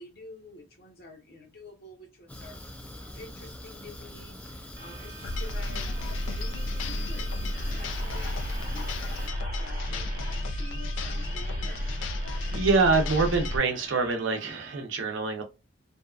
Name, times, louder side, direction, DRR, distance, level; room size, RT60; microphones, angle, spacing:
voice 1, 0.0-2.6 3.0-10.1 10.4-11.8 12.3-12.5, left 2 dB, 55° left, 0.9 m, -48 dB
Fire, 2.3-9.3, left 1 dB, 10° left, 0.4 m, -43 dB
sound 1, 4.8-14.8, right 3 dB, 45° right, 0.9 m, -46 dB
sound 2, 5.2-13.6, left 1 dB, 85° left, 0.4 m, -32 dB
voice 2, 12.5-15.4, right 4 dB, 85° right, 0.6 m, -25 dB
2.7 x 2.3 x 2.4 m
head